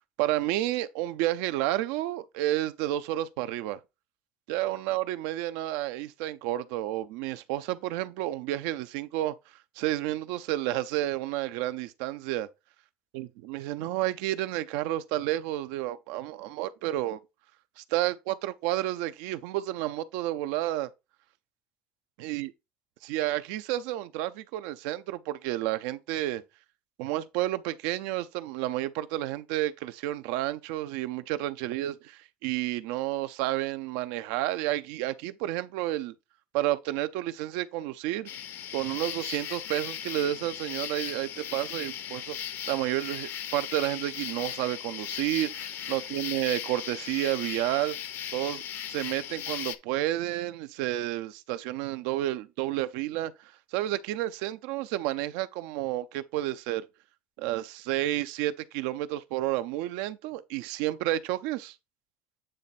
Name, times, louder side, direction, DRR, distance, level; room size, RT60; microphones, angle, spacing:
voice 1, 0.2-3.8 4.5-9.3 9.8-12.5 13.1-17.2 17.8-20.9 22.2-22.5 23.0-26.4 27.0-36.1 36.5-38.3 38.7-42.4 42.7-48.0 48.3-48.6 48.9-56.9 57.4-61.7, right 15 dB, 85° right, 0.6 m, -31 dB
sound 1, 38.3-49.8, left 10 dB, 60° left, 0.8 m, -37 dB
8.9 x 3.3 x 4.2 m
supercardioid pair, 105°, 4 cm